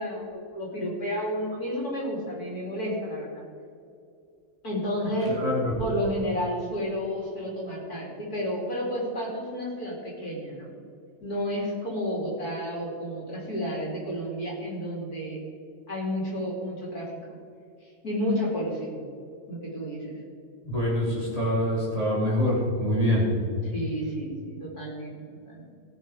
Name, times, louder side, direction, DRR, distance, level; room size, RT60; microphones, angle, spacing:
voice 1, 0.0-3.4 4.6-5.3 5.8-10.7 11.2-15.4 15.9-17.1 18.0-19.0 19.5-20.1 23.7-25.1 25.5-25.7, equal, 45° left, -3 dB, 3.4 m, -31 dB
voice 2, 5.2-5.7 20.6-23.3, equal, 15° right, -5 dB, 2.4 m, -25 dB
18.0 x 6.8 x 4.8 m, 2.5 s
omnidirectional pair, 2.3 m